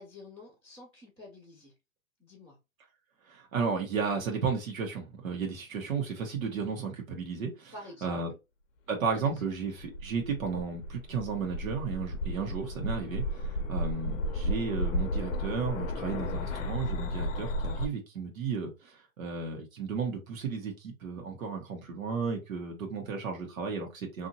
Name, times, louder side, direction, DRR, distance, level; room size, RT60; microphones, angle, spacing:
voice 1, 0.0-1.7 2.2-2.6 7.7-8.4 9.1-9.5, left 1 dB, 10° right, 0.4 m, -49 dB
voice 2, 3.3-7.7 8.0-8.3 8.9-24.3, right 5 dB, 90° right, 1.2 m, -34 dB
Growling Build up Key tone end, 9.5-17.9, equal, 65° left, 0.6 m, -33 dB
2.7 x 2.7 x 2.7 m
hypercardioid pair, 160°, 40 cm